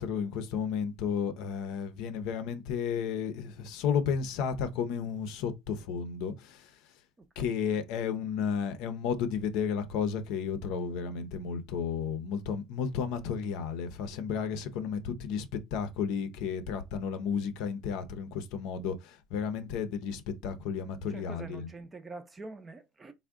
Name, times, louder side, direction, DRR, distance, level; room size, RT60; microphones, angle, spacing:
voice 1, 0.0-6.7 7.4-21.7, left 7 dB, 70° left, 0.6 m, -33 dB
voice 2, 7.2-7.5 21.1-23.1, right 3 dB, 20° right, 0.5 m, -45 dB
3.5 x 2.1 x 3.5 m
cardioid pair, 130°, 0 cm